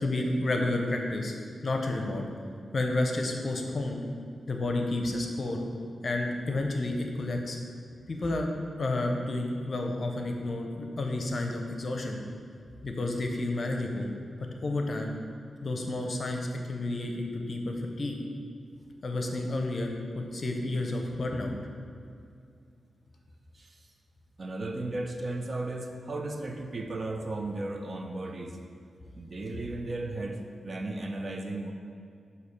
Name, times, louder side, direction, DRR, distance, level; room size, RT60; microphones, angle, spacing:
voice 1, 0.0-1.4 1.6-2.2 2.7-4.0 4.5-5.6 6.0-7.6 8.1-8.5 8.8-12.2 12.8-14.1 14.6-15.1 15.6-18.2 19.0-21.5, left 2 dB, 50° left, 2 dB, 0.7 m, -30 dB
voice 2, 24.4-28.6 29.1-31.7, right 2 dB, 45° right, 4 dB, 0.5 m, -35 dB
6.3 x 2.8 x 5.4 m, 2.4 s
cardioid pair, 80°, 0 cm